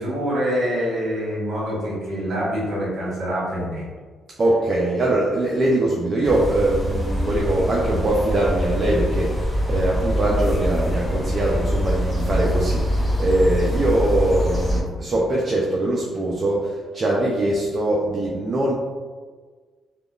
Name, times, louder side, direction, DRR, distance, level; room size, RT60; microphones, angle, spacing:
voice 1, 0.0-3.8, equal, 55° right, -6 dB, 1.5 m, -25 dB
voice 2, 4.4-18.7, right 1 dB, 40° right, -4 dB, 0.4 m, -22 dB
sound 1, 6.2-14.8, equal, 10° left, 0.7 m, -24 dB
3.4 x 2.3 x 2.3 m, 1.5 s
cardioid pair, 90°, 0 cm